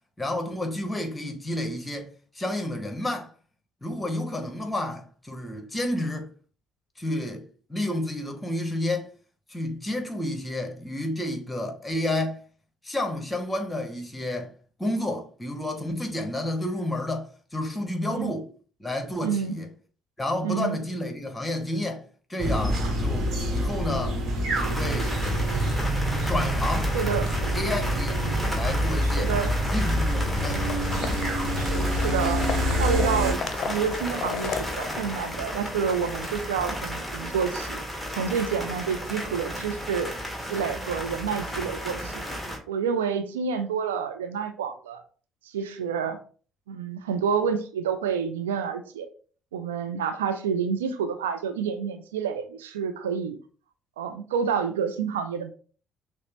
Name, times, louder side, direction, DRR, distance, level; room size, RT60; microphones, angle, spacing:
voice 1, 0.2-2.1 2.3-3.3 3.8-6.3 7.0-7.4 7.7-9.1 9.5-12.4 12.8-14.5 14.8-18.5 18.8-19.7 20.2-22.0 22.3-24.2 24.7-25.1 26.3-26.9 27.5-28.3 28.5-29.3 29.7-30.6 31.0-31.3, left 1 dB, 15° left, 1.1 m, -30 dB
voice 2, 19.2-19.6 20.4-20.8 26.9-27.3 29.2-29.5 31.6-32.4 32.8-33.4 33.7-37.8 38.2-40.1 40.5-42.1 42.7-45.0 45.4-46.2 46.7-49.1 49.5-53.4 54.0-55.5, right 6 dB, 80° right, 0.4 m, -28 dB
sound 1, 22.4-33.3, equal, 50° right, 1.1 m, -26 dB
sound 2, 24.5-42.6, equal, 5° right, 1.4 m, -33 dB
sound 3, 28.4-36.4, left 6 dB, 50° left, 0.6 m, -37 dB
6.2 x 2.1 x 3.0 m
figure-of-eight pair, 50°, 0 cm